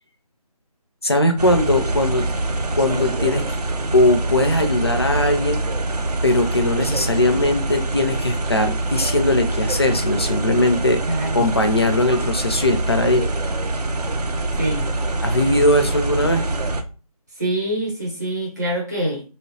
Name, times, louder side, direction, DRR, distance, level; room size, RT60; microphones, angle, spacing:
voice 1, 1.0-2.3 2.7-3.5 3.9-5.6 6.2-11.0 11.3-13.3 15.2-16.5, left 1 dB, 40° left, 6 dB, 0.4 m, -19 dB
sound 1, 1.4-16.8, right 2 dB, 90° right, 0.5 m, -24 dB
voice 2, 11.1-11.5 14.6-14.9 17.4-19.2, right 1 dB, 25° right, -2 dB, 0.7 m, -25 dB
2.8 x 2.0 x 2.7 m, 0.36 s
figure-of-eight pair, 175°, 20 cm